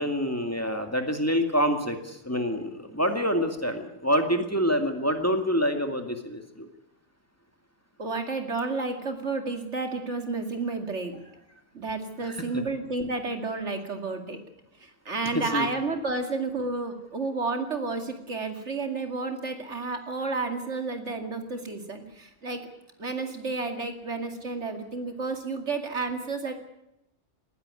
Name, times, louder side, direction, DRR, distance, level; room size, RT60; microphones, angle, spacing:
voice 1, 0.0-6.7 12.2-12.5 15.3-15.7, equal, 10° left, 5 dB, 2.1 m, -26 dB
voice 2, 8.0-11.2 11.7-14.4 14.8-22.7 23.0-26.5, right 3 dB, 70° right, 5 dB, 2.7 m, -31 dB
19.5 x 15.5 x 9.7 m, 0.85 s
omnidirectional pair, 1.2 m